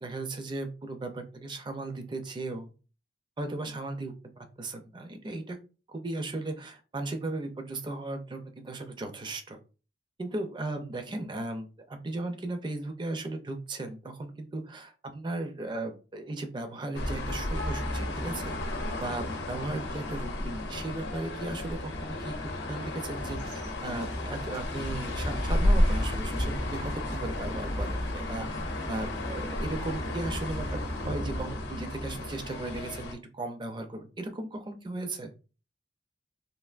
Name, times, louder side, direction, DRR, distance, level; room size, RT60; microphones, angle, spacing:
voice 1, 0.0-2.7 3.4-5.6 5.9-9.6 10.2-18.6 19.0-28.6 28.9-35.3, right 2 dB, 25° right, 6 dB, 0.4 m, -36 dB
sound 1, 16.9-33.1, left 1 dB, 80° left, 0.7 m, -32 dB
sound 2, 23.1-31.6, equal, 85° right, 1.7 m, -37 dB
3.3 x 2.5 x 2.4 m, 0.34 s
head